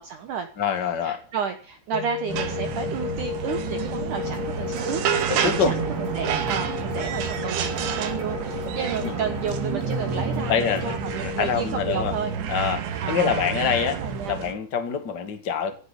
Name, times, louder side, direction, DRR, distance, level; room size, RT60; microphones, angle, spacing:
voice 1, 0.0-0.5 1.0-5.0 5.3-5.7 6.1-12.3 13.0-14.5, right 7 dB, 65° right, 7 dB, 2.1 m, -32 dB
voice 2, 0.6-1.2 5.3-5.7 9.0-9.1 10.5-12.2 12.5-14.0 14.3-15.8, left 7 dB, 40° left, 7 dB, 1.7 m, -25 dB
sound 1, 1.9-12.4, left 13 dB, 85° left, 3.4 m, -35 dB
sound 2, 2.3-14.5, right 7 dB, 85° right, 4.1 m, -29 dB
sound 3, 4.1-11.0, right 4 dB, 40° right, 4.5 m, -41 dB
16.0 x 8.3 x 8.5 m, 0.39 s
omnidirectional pair, 5.0 m